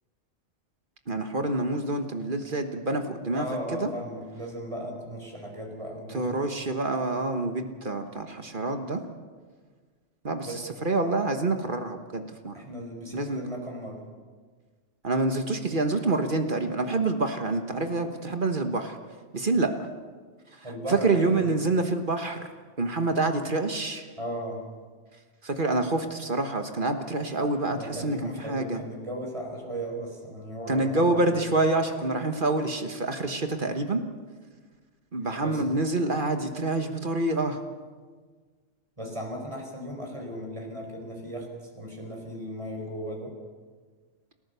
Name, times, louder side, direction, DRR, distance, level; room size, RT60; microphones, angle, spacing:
voice 1, 1.1-3.5 3.7-3.9 6.1-9.0 10.2-10.5 10.8-12.5 13.1-13.4 15.0-19.0 19.3-19.9 20.9-22.5 22.8-24.0 25.4-28.8 30.7-34.0 35.1-37.6, right 2 dB, 45° right, 6 dB, 1.5 m, -27 dB
voice 2, 3.4-6.5 10.4-10.6 12.5-14.0 20.6-21.5 24.2-24.6 27.7-31.4 35.4-35.6 39.0-43.3, equal, 30° right, 1 dB, 4.7 m, -36 dB
29.5 x 14.0 x 6.9 m, 1.5 s
omnidirectional pair, 1.2 m